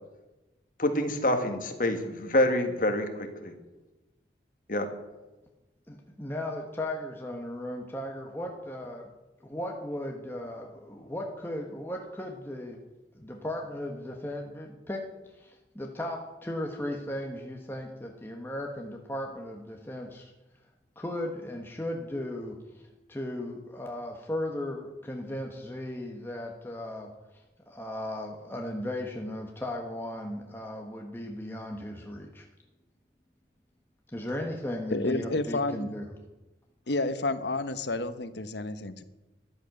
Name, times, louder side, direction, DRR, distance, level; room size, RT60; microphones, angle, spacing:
voice 1, 0.8-3.5 4.7-4.9, left 1 dB, 45° left, 6 dB, 1.8 m, -27 dB
voice 2, 5.9-9.1 9.4-12.8 13.1-15.1 15.3-20.3 21.0-32.5 34.1-36.1, left 1 dB, 10° left, 1 dB, 1.2 m, -36 dB
voice 3, 34.9-35.9 36.9-39.0, left 2 dB, 70° left, 12 dB, 1.0 m, -30 dB
13.5 x 11.0 x 6.6 m, 1.1 s
head